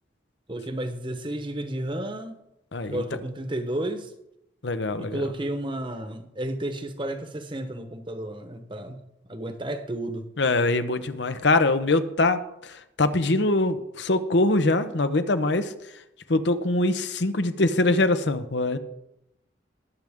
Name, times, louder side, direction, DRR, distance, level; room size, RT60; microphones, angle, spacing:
voice 1, 0.5-2.4 2.9-4.1 5.0-9.0 9.3-10.3, right 1 dB, 25° right, 8 dB, 1.1 m, -32 dB
voice 2, 2.7-3.0 4.6-5.2 10.4-15.7 16.3-18.8, left 2 dB, 70° left, 11 dB, 0.9 m, -23 dB
21.0 x 7.7 x 3.7 m, 0.85 s
head